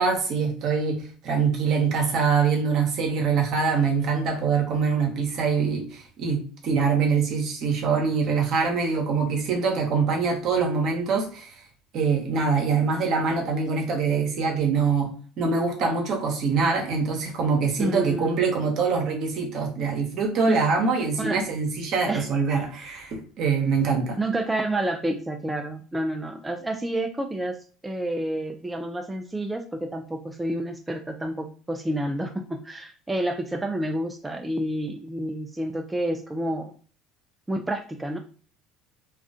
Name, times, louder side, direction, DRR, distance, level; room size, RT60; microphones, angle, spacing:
voice 1, 0.0-11.6 11.9-15.1 15.4-24.2, right 5 dB, 60° right, 2 dB, 0.8 m, -24 dB
voice 2, 17.8-18.4 20.5-20.6 21.2-21.4 22.1-22.3 24.2-36.7 37.5-38.2, right 1 dB, 15° right, 4 dB, 0.3 m, -29 dB
2.4 x 2.3 x 2.4 m, 0.43 s
hypercardioid pair, 75°, 0 cm